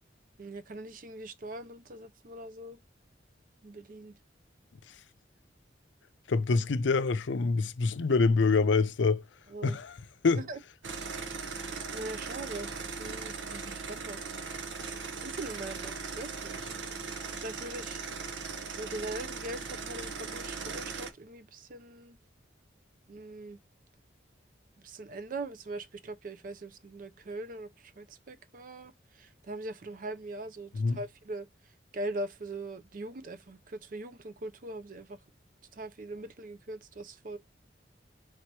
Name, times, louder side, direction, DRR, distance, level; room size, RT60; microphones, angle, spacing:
voice 1, 0.4-2.8 3.6-4.1 9.5-9.8 10.4-10.6 11.9-12.7 13.0-14.4 15.1-16.7 17.4-18.0 18.7-22.2 23.1-23.6 24.8-31.5 31.9-35.2 35.7-37.4, right 2 dB, 45° right, 0.5 m, -41 dB
voice 2, 6.3-9.2 9.6-9.9 10.2-10.4 30.7-31.0, left 4 dB, 80° left, 0.5 m, -25 dB
sound 1, 10.8-21.1, right 4 dB, 85° right, 0.8 m, -39 dB
3.9 x 2.8 x 4.6 m
head